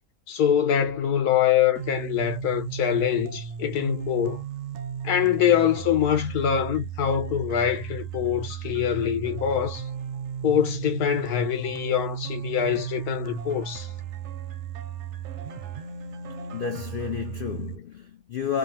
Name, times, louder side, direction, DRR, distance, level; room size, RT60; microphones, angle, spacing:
voice 1, 0.3-4.4 5.0-9.9 10.4-13.9, left 9 dB, 85° left, 1.3 m, -24 dB
sound 1, 1.8-17.8, right 8 dB, 65° right, 0.7 m, -35 dB
voice 2, 16.5-18.6, left 7 dB, 65° left, 0.5 m, -31 dB
2.9 x 2.5 x 2.6 m
omnidirectional pair, 1.6 m